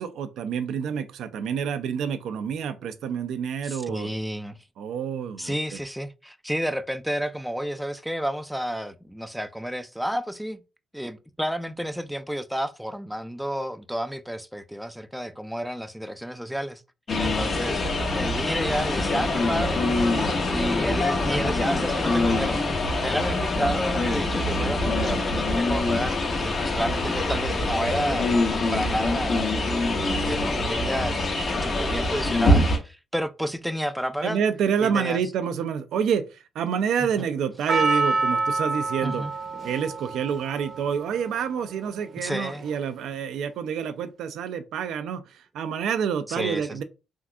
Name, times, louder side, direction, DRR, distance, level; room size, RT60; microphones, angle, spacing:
voice 1, 0.0-4.1 4.8-5.8 17.4-17.6 34.2-39.2 39.6-46.8, right 7 dB, 75° right, 0.3 m, -28 dB
voice 2, 3.6-4.6 5.4-10.6 10.9-16.8 17.2-17.8 18.1-20.2 20.5-22.6 23.0-34.4 34.8-35.2 37.0-37.3 39.0-39.3 42.2-42.6 46.3-46.7, equal, ahead, 0.3 m, -31 dB
sound 1, 17.1-32.8, left 2 dB, 45° left, 0.8 m, -24 dB
Percussion, 37.7-42.0 42.7-42.8, right 3 dB, 40° right, 0.6 m, -27 dB
3.5 x 2.6 x 2.3 m
cardioid pair, 90°, 0 cm